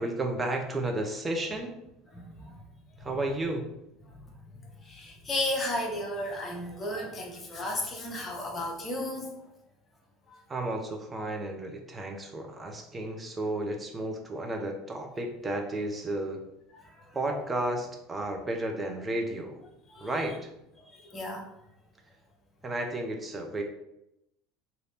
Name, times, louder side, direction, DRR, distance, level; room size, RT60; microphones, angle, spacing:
voice 1, 0.0-1.7 3.0-3.7 10.5-16.4 17.1-19.6 20.0-20.5 22.6-23.6, right 1 dB, 20° right, 3 dB, 0.8 m, -32 dB
voice 2, 2.1-2.5 4.9-9.3 20.0-20.1 21.1-21.4, left 1 dB, 30° left, 2 dB, 0.9 m, -33 dB
3.2 x 2.7 x 4.2 m, 0.84 s
figure-of-eight pair, 70°, 0 cm